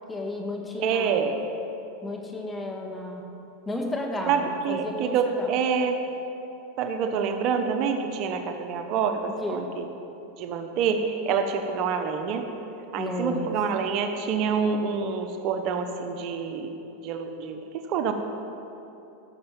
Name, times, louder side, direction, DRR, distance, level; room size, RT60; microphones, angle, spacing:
voice 1, 0.1-1.2 2.0-3.2 3.7-5.6 9.4-9.7 13.0-13.5, left 2 dB, 15° left, 1 dB, 1.9 m, -32 dB
voice 2, 0.8-1.3 4.3-6.0 6.8-9.8 10.4-12.5 12.9-16.7 17.0-18.1, right 6 dB, 50° right, 6 dB, 1.0 m, -27 dB
16.0 x 6.8 x 7.4 m, 3.0 s
supercardioid pair, 125°, 0 cm